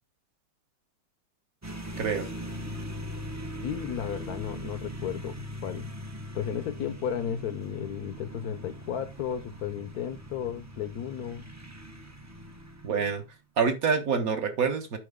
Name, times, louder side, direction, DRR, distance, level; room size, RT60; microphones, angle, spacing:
sound 1, 1.6-13.3, equal, 25° right, 0.4 m, -40 dB
voice 1, 2.0-2.3 12.8-13.2 13.6-15.0, right 6 dB, 55° right, 1.5 m, -26 dB
voice 2, 3.6-5.4 5.6-5.9 6.3-11.5, left 9 dB, 65° left, 1.1 m, -34 dB
11.0 x 4.5 x 3.5 m
omnidirectional pair, 1.9 m